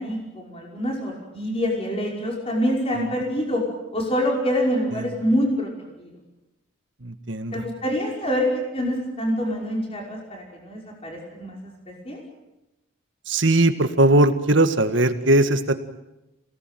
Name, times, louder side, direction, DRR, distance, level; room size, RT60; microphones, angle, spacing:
voice 1, 0.0-3.6 3.9-5.7 6.0-6.1 7.5-11.6 11.9-12.2, equal, 25° left, 0 dB, 5.7 m, -26 dB
voice 2, 7.0-7.6 13.3-15.7, right 1 dB, 60° right, 9 dB, 1.8 m, -19 dB
27.5 x 18.5 x 9.3 m, 0.97 s
head